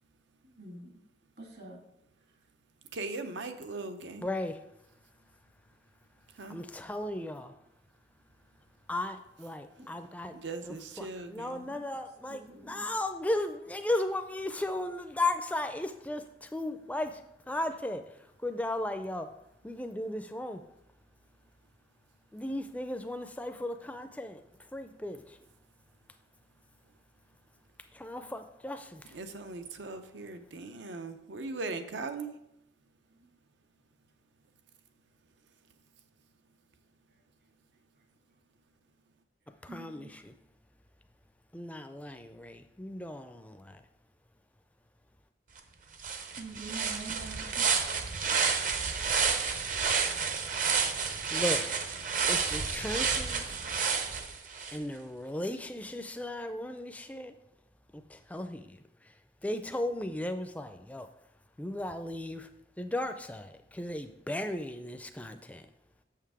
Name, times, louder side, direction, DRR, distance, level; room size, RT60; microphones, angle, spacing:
voice 1, 0.6-0.9 1.4-1.8 9.8-9.9 11.7-11.8 12.3-12.9 39.7-40.1 46.4-47.7, right 3 dB, 60° right, 0 dB, 1.7 m, -45 dB
voice 2, 2.9-4.3 6.4-6.6 10.3-11.7 29.0-32.3, right 3 dB, 85° right, 8 dB, 0.7 m, -39 dB
voice 3, 4.2-4.5 6.5-7.5 8.9-10.3 10.6-17.1 17.5-18.0 18.4-19.3 19.6-20.6 22.3-24.4 24.7-25.2 28.0-29.0 39.6-40.3 41.5-43.7 51.3-51.6 52.3-53.4 54.7-57.3 58.3-58.6 59.4-61.1 61.6-62.5 62.8-65.6, left 1 dB, 10° left, 8 dB, 0.4 m, -35 dB
sound 1, 45.6-45.7 46.0-54.8, right 5 dB, 45° right, 0.6 m, -30 dB
7.1 x 5.7 x 4.8 m, 0.83 s
head